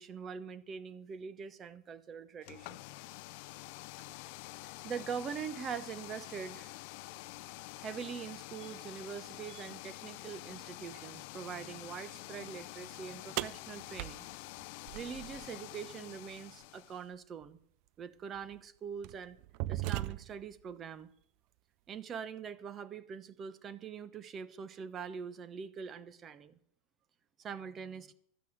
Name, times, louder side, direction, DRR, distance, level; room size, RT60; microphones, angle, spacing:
voice 1, 0.0-2.8 4.6-6.7 7.8-14.3 14.9-17.6 18.0-19.4 19.7-21.1 21.9-26.6 27.4-28.1, right 7 dB, 30° right, 15 dB, 1.1 m, -43 dB
sound 1, 2.4-17.1, left 21 dB, 60° left, 0.5 m, -48 dB
sound 2, 13.4-15.5 17.4-17.5 18.4-18.6 19.0-20.5, right 18 dB, 55° right, 0.4 m, -38 dB
12.5 x 8.2 x 8.0 m, 0.66 s
hypercardioid pair, 110°, 0 cm